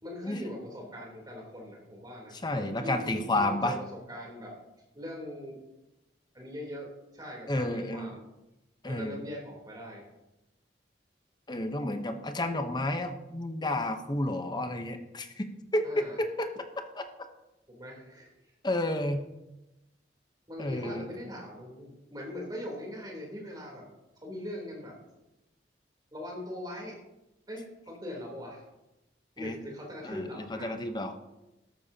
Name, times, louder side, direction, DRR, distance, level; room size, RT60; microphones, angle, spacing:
voice 1, 0.0-4.5 4.9-5.6 6.3-8.2 8.9-10.1 15.8-16.2 17.7-18.3 20.5-23.9 24.2-25.0 26.1-27.0 27.5-28.6 29.4-30.7, left 1 dB, 25° right, -1 dB, 3.4 m, -41 dB
voice 2, 2.4-3.8 7.5-8.1 8.8-9.2 11.5-17.0 18.6-19.2 20.6-21.0 29.4-29.6 30.0-31.2, left 1 dB, 25° left, 7 dB, 0.9 m, -31 dB
14.0 x 12.0 x 2.8 m, 0.96 s
head